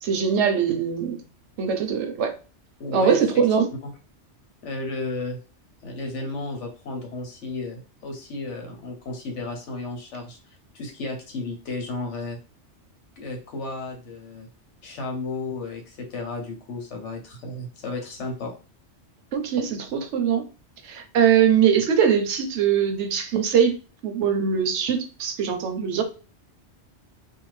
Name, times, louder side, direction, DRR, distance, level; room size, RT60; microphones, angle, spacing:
voice 1, 0.0-1.2 1.6-2.3 2.9-3.7 19.3-20.4 20.8-23.7 24.0-26.0, right 7 dB, 80° right, 0.9 m, -22 dB
voice 2, 2.8-3.2 3.8-3.9 4.6-5.4 5.8-10.4 10.7-12.4 13.2-14.5 14.8-18.5, left 3 dB, 80° left, 1.2 m, -33 dB
2.7 x 2.3 x 3.1 m
omnidirectional pair, 1.2 m